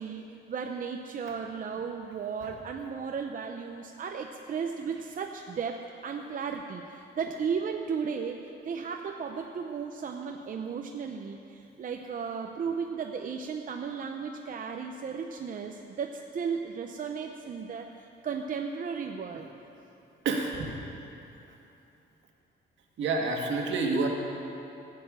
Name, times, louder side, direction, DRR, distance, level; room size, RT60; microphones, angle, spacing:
voice 1, 0.0-8.4 8.6-19.5, right 6 dB, 45° right, 3 dB, 0.7 m, -35 dB
voice 2, 20.2-20.7 23.0-24.1, right 3 dB, 70° right, 0 dB, 2.1 m, -28 dB
14.5 x 6.8 x 8.9 m, 2.8 s
cardioid pair, 130°, 20 cm